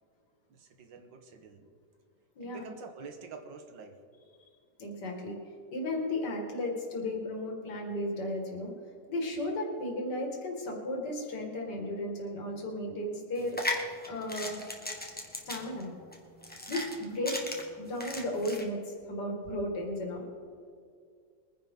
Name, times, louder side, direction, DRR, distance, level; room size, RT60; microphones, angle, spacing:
voice 1, 0.5-1.7 2.4-4.0, right 5 dB, 85° right, 5 dB, 1.9 m, -47 dB
voice 2, 2.4-2.7 4.8-5.4 5.7-8.7 9.1-13.7 14.1-14.6 15.5-15.9 16.7-17.4 17.8-18.8 19.1-20.3, left 1 dB, 65° left, 0 dB, 2.7 m, -34 dB
sound 1, 13.4-18.6, left 2 dB, 5° left, 1.1 m, -37 dB
22.0 x 10.5 x 3.8 m, 2.2 s
omnidirectional pair, 2.0 m